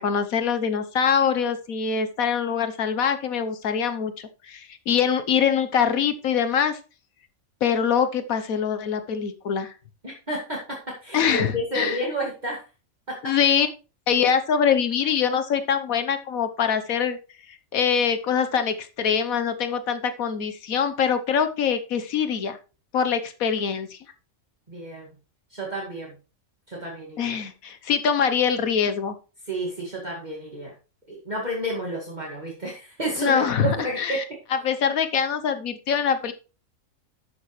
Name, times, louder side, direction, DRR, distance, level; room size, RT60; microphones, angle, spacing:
voice 1, 0.0-6.8 7.6-9.7 11.1-12.0 13.2-13.7 14.1-17.2 17.7-22.6 22.9-24.0 27.2-29.1 33.2-34.2 34.6-36.3, left 7 dB, 85° left, 9 dB, 1.5 m, -24 dB
voice 2, 10.0-12.6 13.1-13.3 24.7-25.1 25.5-26.2 26.7-27.4 29.4-30.7 31.1-34.2, right 1 dB, 30° right, -4 dB, 2.3 m, -31 dB
12.5 x 8.5 x 3.2 m, 0.34 s
omnidirectional pair, 1.4 m